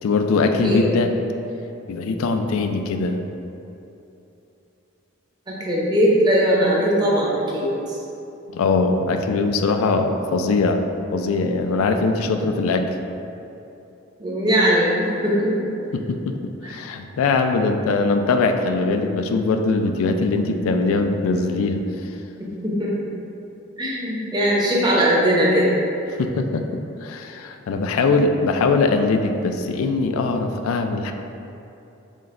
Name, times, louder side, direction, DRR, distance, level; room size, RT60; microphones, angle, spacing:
voice 1, 0.0-1.1 1.9-3.3 8.5-10.8 11.1-12.9 15.9-16.3 16.6-21.9 26.2-31.1, left 3 dB, 85° left, 6 dB, 0.3 m, -21 dB
voice 2, 5.5-8.0 12.4-12.6 14.2-15.7 22.4-22.9 23.8-25.7, equal, 20° right, -5 dB, 0.7 m, -20 dB
6.2 x 2.2 x 3.7 m, 2.9 s
head